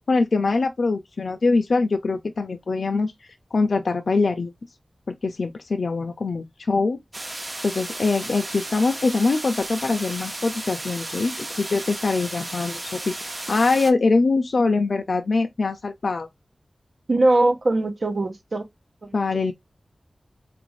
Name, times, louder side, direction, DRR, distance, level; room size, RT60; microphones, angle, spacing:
voice 1, 0.1-3.1 3.5-4.5 5.1-7.0 7.6-13.1 13.5-16.3 19.1-19.5, left 3 dB, 80° left, 0.5 m, -23 dB
sound 1, 7.1-13.9, right 1 dB, 35° right, 0.8 m, -34 dB
voice 2, 17.1-18.7 19.0-19.5, right 2 dB, 65° right, 0.9 m, -22 dB
4.3 x 2.5 x 3.1 m
wide cardioid pair, 90°, 0 cm